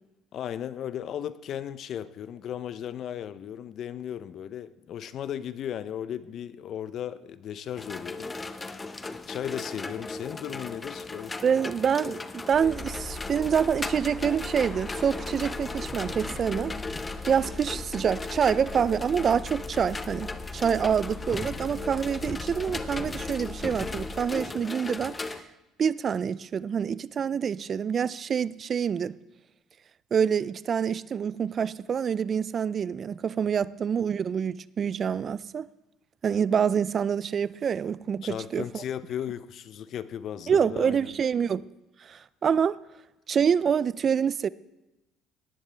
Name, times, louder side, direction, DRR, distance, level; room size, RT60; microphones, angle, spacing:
voice 1, 0.3-8.3 9.3-11.4 38.2-41.1, left 9 dB, 55° left, 0.6 m, -36 dB
sound 1, 7.8-25.4, left 3 dB, 20° left, 0.7 m, -37 dB
voice 2, 11.4-16.7 17.3-25.5 25.8-29.2 30.1-35.7 36.2-38.8 40.5-41.6 42.0-42.8 43.3-44.5, right 7 dB, 45° right, 0.4 m, -26 dB
sound 2, 12.5-24.2, left 2 dB, 5° left, 4.2 m, -40 dB
18.5 x 10.5 x 3.4 m
supercardioid pair, 90°, 0 cm